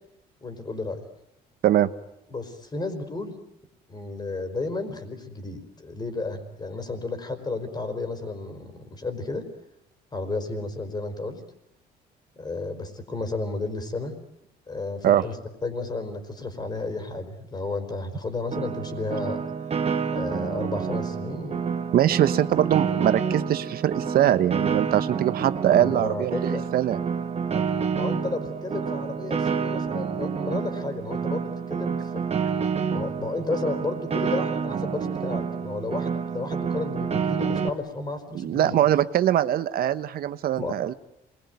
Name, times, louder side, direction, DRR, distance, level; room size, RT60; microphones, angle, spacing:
voice 1, 0.4-1.0 2.3-3.3 3.9-9.4 10.1-11.4 12.4-14.1 14.7-15.4 15.6-19.4 20.1-21.6 25.7-26.6 27.5-27.7 27.9-32.2 32.9-38.8 40.5-40.8, left 3 dB, 25° left, 9 dB, 4.7 m, -32 dB
Piano, 18.5-37.7, right 6 dB, 35° right, 2.0 m, -28 dB
voice 2, 21.9-27.0 38.3-40.9, right 11 dB, 60° right, 12 dB, 1.2 m, -22 dB
27.0 x 22.0 x 9.4 m, 0.80 s
cardioid pair, 110°, 17 cm